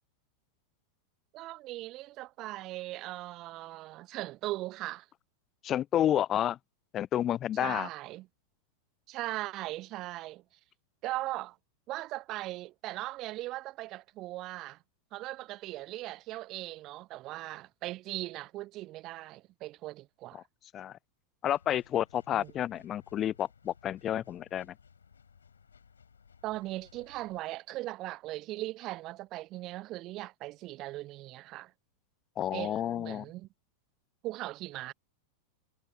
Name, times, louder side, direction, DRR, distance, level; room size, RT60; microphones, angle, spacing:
voice 1, 1.3-5.1 7.5-8.3 9.1-10.4 11.0-11.6 11.9-14.8 15.1-20.4 22.3-22.5 26.4-31.7 32.5-33.5 34.2-34.9, right 17 dB, 35° right, 1.0 m, -39 dB
voice 2, 5.6-6.6 6.9-7.9 20.7-21.0 21.4-24.7 32.4-33.2, left 11 dB, 30° left, 0.4 m, -30 dB
sound 1, 21.5-27.4, left 6 dB, 70° left, 3.6 m, -60 dB
figure-of-eight pair, 90°, 0 cm